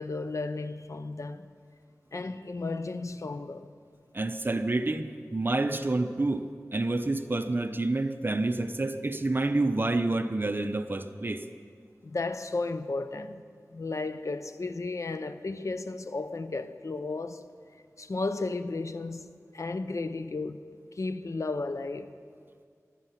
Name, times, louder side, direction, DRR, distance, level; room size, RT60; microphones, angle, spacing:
voice 1, 0.0-1.5 2.1-3.7 12.0-13.4 13.7-17.4 18.0-19.3 19.5-20.6 20.9-22.1, left 3 dB, 65° left, 0.7 m, -34 dB
voice 2, 4.1-6.5 6.7-11.5, right 2 dB, 35° right, 0.7 m, -28 dB
24.0 x 9.1 x 5.8 m
wide cardioid pair, 60°, 6 cm